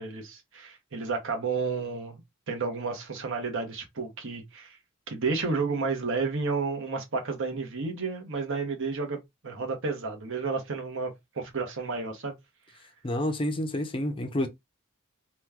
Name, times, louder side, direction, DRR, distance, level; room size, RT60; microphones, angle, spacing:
voice 1, 0.0-2.2 2.5-4.8 5.1-12.3, right 4 dB, 60° right, 0.9 m, -31 dB
voice 2, 13.0-14.5, left 1 dB, 25° left, 0.5 m, -29 dB
3.0 x 2.2 x 3.5 m
head